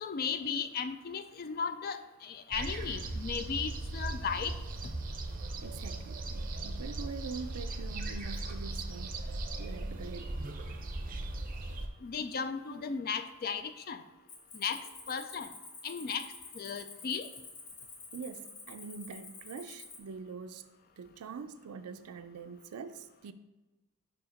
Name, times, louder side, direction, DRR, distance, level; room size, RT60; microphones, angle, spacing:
voice 1, 0.0-4.5 12.0-14.0 14.5-14.8 15.1-15.5 15.8-16.2 16.6-17.3, left 6 dB, 40° left, 10 dB, 0.3 m, -35 dB
sound 1, 2.5-11.9, right 2 dB, 40° right, 0.6 m, -38 dB
voice 2, 5.6-9.3 9.6-10.4 18.1-20.7 21.0-23.3, right 5 dB, 85° right, 9 dB, 0.4 m, -44 dB
Cricket, 14.3-20.0, left 4 dB, 80° left, 1.3 m, -49 dB
5.0 x 4.8 x 5.1 m, 1.1 s
head